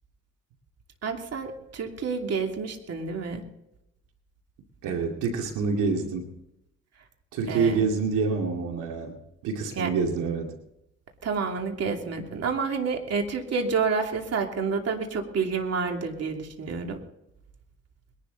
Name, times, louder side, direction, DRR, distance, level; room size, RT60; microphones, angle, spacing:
voice 1, 1.0-3.4 7.5-7.8 9.8-9.9 11.2-17.0, right 5 dB, 55° right, 3 dB, 2.8 m, -29 dB
voice 2, 4.8-6.3 7.3-9.2 9.4-10.5, right 5 dB, 90° right, 2 dB, 2.4 m, -27 dB
21.5 x 11.5 x 4.0 m, 0.84 s
cardioid pair, 90°, 30 cm